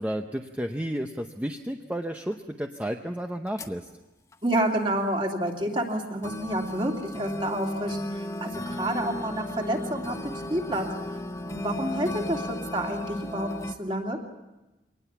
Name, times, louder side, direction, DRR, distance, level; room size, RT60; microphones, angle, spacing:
voice 1, 0.0-3.9, equal, 10° right, 4 dB, 0.8 m, -32 dB
sound 1, 2.3-2.4 3.5-3.8 4.3-4.4 5.5-5.6 6.2-13.7, left 1 dB, 15° left, 1.0 m, -35 dB
voice 2, 4.4-10.9 11.4-14.2, right 1 dB, 30° right, 1 dB, 2.7 m, -29 dB
24.0 x 19.5 x 7.1 m, 1.0 s
head